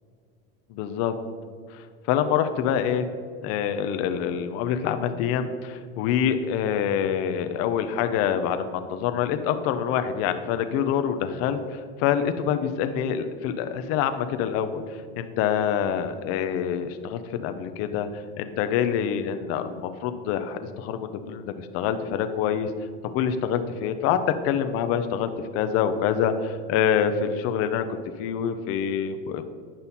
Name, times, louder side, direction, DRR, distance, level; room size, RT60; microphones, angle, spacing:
voice 1, 0.7-1.1 1.7-3.0 3.4-22.7 23.0-24.2 24.4-27.8 28.2-29.4, left 8 dB, 55° left, 8 dB, 0.6 m, -26 dB
8.9 x 5.5 x 4.2 m, 2.1 s
supercardioid pair, 135°, 29 cm